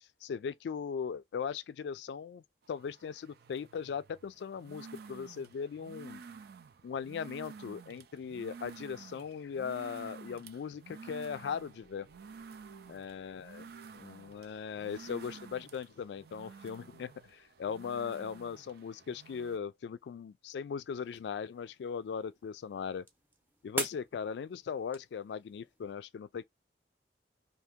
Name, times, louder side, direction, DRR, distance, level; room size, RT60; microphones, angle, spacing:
voice 1, 0.2-6.2 6.8-12.1 12.9-13.6 13.9-23.0 23.6-26.5, left 6 dB, 75° left, 0.3 m, -39 dB
sound 1, 2.7-19.6, right 5 dB, 60° right, 0.4 m, -51 dB
sound 2, 11.3-18.8, right 4 dB, 30° left, 0.6 m, -66 dB
sound 3, 20.9-25.9, right 1 dB, 10° right, 0.7 m, -44 dB
2.7 x 2.7 x 3.5 m
head